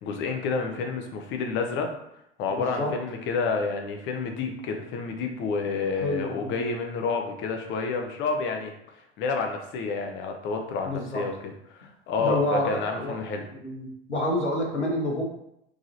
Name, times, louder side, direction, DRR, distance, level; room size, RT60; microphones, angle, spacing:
voice 1, 0.0-1.9 2.4-8.7 9.2-13.4, left 4 dB, 35° left, 4 dB, 0.8 m, -29 dB
voice 2, 2.5-2.9 5.9-6.6 10.8-11.2 12.2-13.2 13.6-15.2, left 1 dB, 85° left, -1 dB, 1.1 m, -28 dB
4.8 x 3.7 x 2.7 m, 0.80 s
figure-of-eight pair, 80°, 34 cm